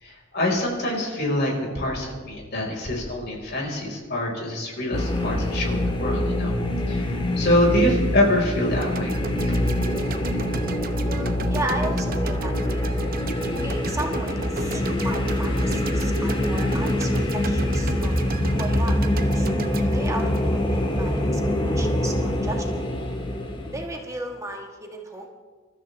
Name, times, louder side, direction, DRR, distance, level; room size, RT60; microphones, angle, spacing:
voice 1, 0.0-6.5 6.9-9.2 9.5-9.6, left 1 dB, 55° left, -1 dB, 4.6 m, -25 dB
sound 1, 4.9-23.8, left 1 dB, 25° left, 1.7 m, -25 dB
sound 2, 8.8-21.0, right 3 dB, 50° right, 0.9 m, -34 dB
voice 2, 11.0-12.9 13.6-18.1 18.5-22.8 23.7-25.3, right 1 dB, 15° right, 1 dB, 1.5 m, -35 dB
27.0 x 13.5 x 3.4 m, 1.4 s
head